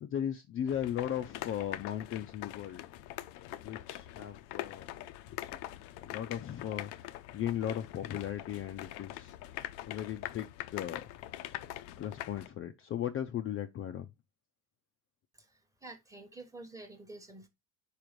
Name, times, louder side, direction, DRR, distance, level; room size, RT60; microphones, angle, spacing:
voice 1, 0.0-2.8 3.6-4.9 5.3-5.6 6.0-9.4 9.8-11.0 12.0-14.1, left 10 dB, 35° left, 0.4 m, -37 dB
sound 1, 0.7-12.5, left 14 dB, 85° left, 0.7 m, -43 dB
voice 2, 15.3-17.5, right 2 dB, 10° right, 0.9 m, -49 dB
4.9 x 4.6 x 5.0 m
cardioid pair, 170°, 39 cm